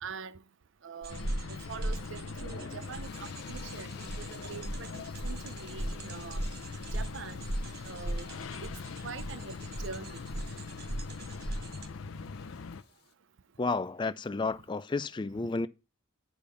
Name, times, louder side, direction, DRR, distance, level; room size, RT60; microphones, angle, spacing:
voice 1, 0.0-0.4 0.8-6.4 6.9-7.4 7.8-8.3 8.6-8.7 9.0-10.2, right 5 dB, 70° right, 0.6 m, -44 dB
sound 1, 1.0-11.9, right 1 dB, 55° right, 1.0 m, -38 dB
sound 2, 1.1-12.8, left 4 dB, 90° left, 0.5 m, -42 dB
sound 3, 2.1-13.1, left 4 dB, 55° left, 1.5 m, -54 dB
voice 2, 13.6-15.7, left 3 dB, 25° left, 0.4 m, -31 dB
10.0 x 5.3 x 5.6 m
head